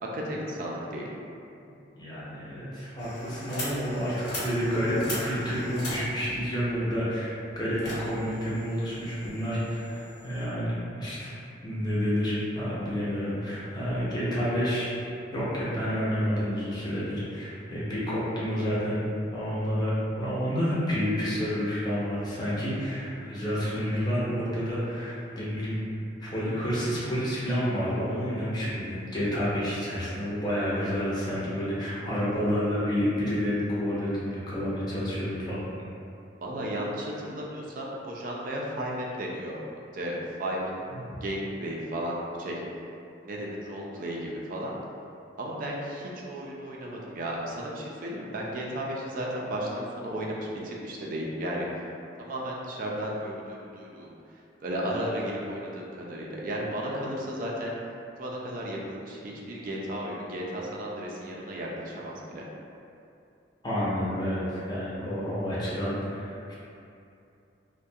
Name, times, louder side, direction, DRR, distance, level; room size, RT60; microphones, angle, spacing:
voice 1, 0.1-1.1 36.4-39.6 39.9-40.8 41.2-42.6 43.2-44.7 45.4-51.8 52.2-57.7 58.2-62.4, equal, 50° right, -3 dB, 0.3 m, -34 dB
voice 2, 1.9-14.9 15.3-25.8 26.2-35.7 40.9-41.0 63.6-66.5, equal, 25° left, -9 dB, 0.6 m, -29 dB
sound 1, 3.0-10.5, left 1 dB, 60° left, 0.8 m, -40 dB
2.3 x 2.1 x 2.6 m, 2.6 s
head